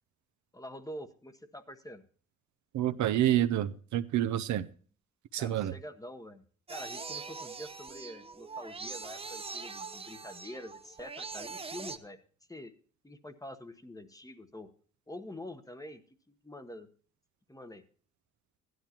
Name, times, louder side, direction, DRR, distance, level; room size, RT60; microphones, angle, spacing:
voice 1, 0.5-2.0 5.4-6.4 6.7-12.2 12.5-12.7 13.0-14.7 15.1-16.0 16.3-16.9 17.5-17.8, left 1 dB, 10° left, 9 dB, 1.0 m, -46 dB
voice 2, 2.7-4.7 5.3-5.7, right 12 dB, 70° right, 11 dB, 0.7 m, -28 dB
sound 1, 6.7-12.0, right 4 dB, 20° right, 0.8 m, -42 dB
15.0 x 11.0 x 2.9 m, 0.42 s
cardioid pair, 90°, 30 cm